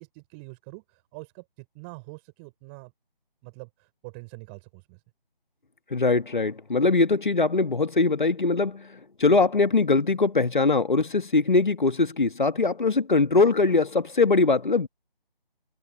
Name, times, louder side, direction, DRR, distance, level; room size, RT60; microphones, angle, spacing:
voice 1, 0.0-2.9 3.4-5.0, right 31 dB, 10° right, 6.4 m, -45 dB
voice 2, 5.9-8.8 9.2-14.9, left 3 dB, 55° left, 1.8 m, -22 dB
figure-of-eight pair, 155°, 29 cm